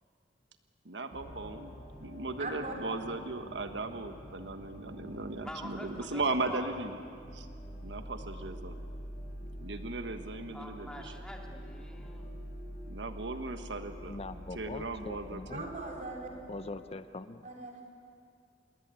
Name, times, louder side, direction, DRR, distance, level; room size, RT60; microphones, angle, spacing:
voice 1, 0.8-6.9 7.3-7.5 7.8-8.8 9.6-11.1 12.9-14.2 14.5-15.8, right 3 dB, 85° right, 7 dB, 1.4 m, -37 dB
sound 1, 1.1-16.8, equal, 55° left, 8.0 m, -46 dB
voice 2, 2.4-2.7 15.5-16.3 17.4-17.7, right 3 dB, 45° right, 1 dB, 4.7 m, -39 dB
voice 3, 5.4-6.7 10.5-12.3, left 1 dB, 5° left, 1 dB, 2.5 m, -45 dB
voice 4, 14.0-15.7 16.5-17.5, left 3 dB, 35° left, 11 dB, 0.7 m, -42 dB
28.0 x 20.5 x 9.1 m, 2.3 s
head